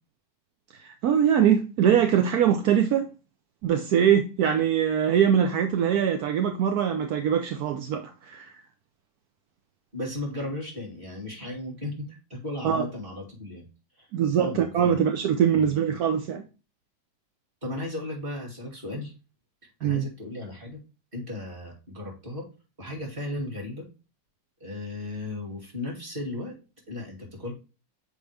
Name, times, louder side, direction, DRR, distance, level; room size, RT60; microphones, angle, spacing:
voice 1, 0.8-3.1 3.6-8.6 12.6-12.8 14.1-16.5 19.8-20.1, right 8 dB, 65° right, 0.9 m, -23 dB
voice 2, 9.9-13.7 14.0-15.0 15.5-15.8 17.6-19.1 19.8-20.8 21.1-22.5 22.8-23.9 24.6-26.6 26.9-27.5, left 2 dB, 25° right, 2.6 m, -35 dB
7.0 x 4.6 x 3.3 m
omnidirectional pair, 2.2 m